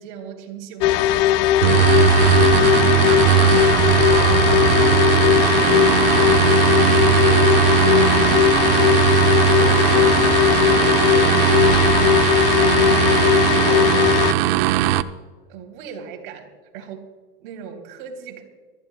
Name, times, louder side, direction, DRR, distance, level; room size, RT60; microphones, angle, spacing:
voice 1, 0.0-2.6 2.9-3.5 4.0-6.0 6.8-8.9 9.3-14.9 15.4-17.1 17.4-18.4, right 6 dB, 60° right, 1 dB, 3.3 m, -38 dB
sound 1, 0.8-14.3, left 13 dB, 50° left, 0.5 m, -18 dB
sound 2, 1.6-15.0, right 12 dB, 90° right, 0.7 m, -18 dB
sound 3, 2.3-10.9, left 8 dB, 80° left, 1.1 m, -41 dB
24.5 x 14.0 x 2.3 m, 1.4 s
supercardioid pair, 155°, 29 cm